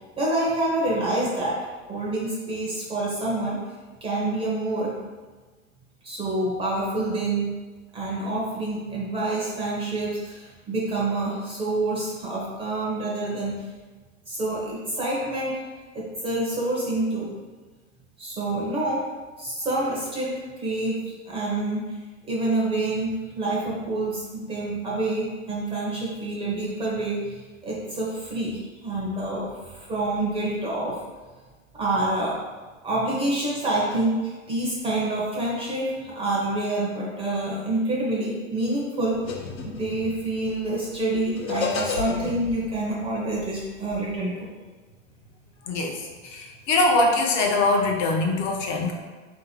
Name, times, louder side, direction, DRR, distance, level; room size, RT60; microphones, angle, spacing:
voice 1, 0.0-1.6 1.9-3.6 4.0-4.9 6.0-7.5 7.9-13.7 14.3-15.6 15.9-17.3 18.2-19.0 19.4-22.0 22.2-31.0 31.7-32.4 32.8-39.2 39.6-44.5, right 2 dB, 15° right, -5 dB, 0.6 m, -27 dB
sound 1, 39.1-44.2, left 5 dB, 75° left, 0.9 m, -34 dB
voice 2, 45.7-48.9, left 2 dB, 30° left, 1 dB, 0.6 m, -23 dB
3.7 x 2.7 x 4.2 m, 1.3 s
hypercardioid pair, 130°, 40 cm